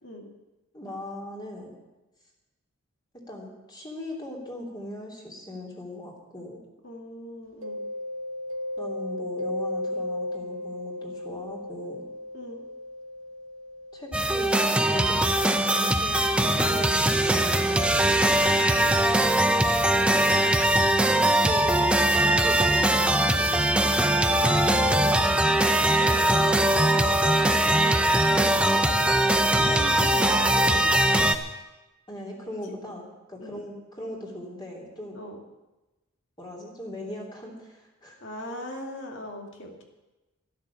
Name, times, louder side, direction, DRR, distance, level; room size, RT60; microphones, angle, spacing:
voice 1, 0.7-1.7 3.3-6.6 8.8-12.1 13.9-14.5 14.9-16.2 16.6-18.2 19.8-20.4 20.9-23.7 26.2-26.7 32.1-35.2 36.4-38.2, left 1 dB, 20° left, -2 dB, 2.9 m, -39 dB
voice 2, 6.8-7.8 12.3-12.7 16.6-16.8 18.6-18.9 24.3-25.3 25.8-26.3 27.8-28.0 28.3-29.2 29.5-30.9 33.4-33.6 35.1-35.4 38.2-39.8, left 1 dB, 55° left, 2 dB, 2.3 m, -39 dB
Mallet percussion, 7.6-17.2, left 1 dB, 65° right, 0.8 m, -36 dB
sound 1, 14.1-31.4, right 1 dB, 5° right, 0.6 m, -21 dB
12.5 x 12.0 x 7.2 m, 1.1 s
head